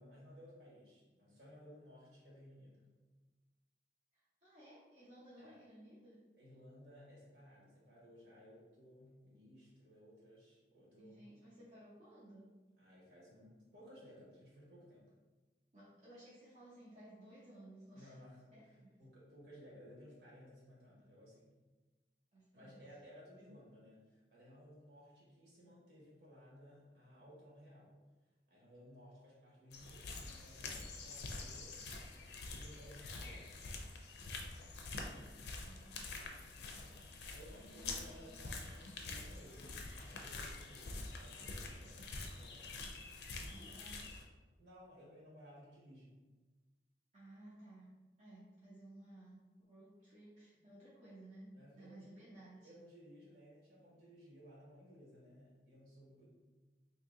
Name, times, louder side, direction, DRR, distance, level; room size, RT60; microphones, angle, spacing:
voice 1, 0.0-2.9 5.4-5.6 6.4-11.3 12.8-15.1 17.9-21.5 22.5-27.9 28.5-32.0 32.5-33.6 37.3-42.9 44.6-46.2 51.5-52.1 52.6-56.3, equal, 65° right, -6 dB, 1.3 m, -59 dB
voice 2, 4.1-6.2 11.0-12.6 15.7-18.2 18.5-18.9 22.3-22.8 35.1-37.0 37.7-38.5 43.5-44.1 47.1-47.9 48.2-52.7, right 1 dB, 40° right, -10 dB, 0.7 m, -58 dB
sound 1, 29.7-44.2, left 3 dB, 70° left, 0.5 m, -47 dB
2.8 x 2.7 x 3.7 m, 1.2 s
head